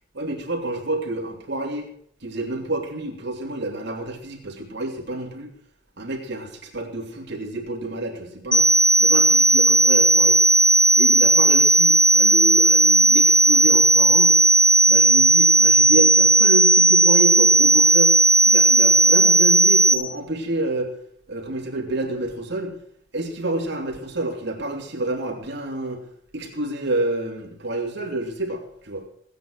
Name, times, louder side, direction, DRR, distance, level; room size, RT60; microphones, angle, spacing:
voice 1, 0.1-1.9 2.2-5.5 6.0-8.7 9.0-10.4 10.9-14.4 14.9-18.1 18.4-20.9 21.3-22.8 23.1-26.0 26.3-29.0, right 2 dB, 65° right, 1 dB, 2.9 m, -28 dB
sound 1, 8.5-19.9, right 2 dB, 5° left, 2.5 m, -15 dB
16.5 x 9.7 x 6.4 m, 0.64 s
head